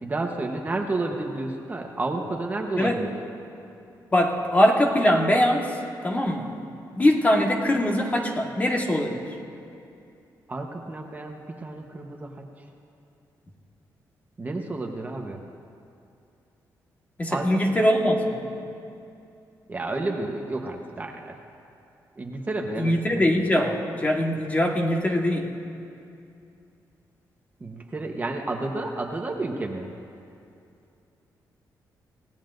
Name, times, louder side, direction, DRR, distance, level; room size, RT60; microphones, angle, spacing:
voice 1, 0.0-3.1 10.5-12.4 14.4-15.4 17.3-17.8 19.7-21.3 22.2-23.3 27.6-29.9, right 2 dB, 25° right, 2 dB, 1.0 m, -31 dB
voice 2, 4.1-5.7 6.0-6.5 7.0-9.2 17.2-18.4 22.8-25.5, left 1 dB, 20° left, 1 dB, 1.5 m, -22 dB
27.0 x 17.0 x 2.6 m, 2.6 s
wide cardioid pair, 140°, 7 cm